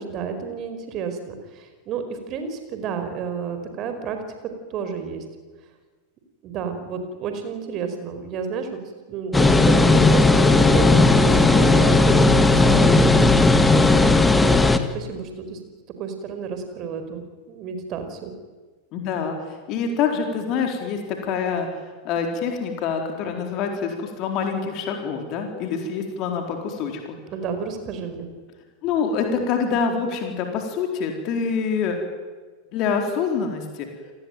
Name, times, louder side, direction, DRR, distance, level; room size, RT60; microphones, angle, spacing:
voice 1, 0.0-4.2 4.7-5.2 6.4-8.8 9.1-13.2 13.6-15.6 16.0-18.3 27.3-28.3, right 6 dB, 35° right, 7 dB, 5.0 m, -31 dB
sound 1, 9.3-14.8, left 2 dB, 10° left, 1.8 m, -15 dB
voice 2, 18.9-21.7 22.0-27.2 28.8-32.0 32.7-33.9, left 6 dB, 40° left, 3 dB, 4.3 m, -26 dB
29.5 x 19.5 x 9.3 m, 1.4 s
figure-of-eight pair, 90°, 0 cm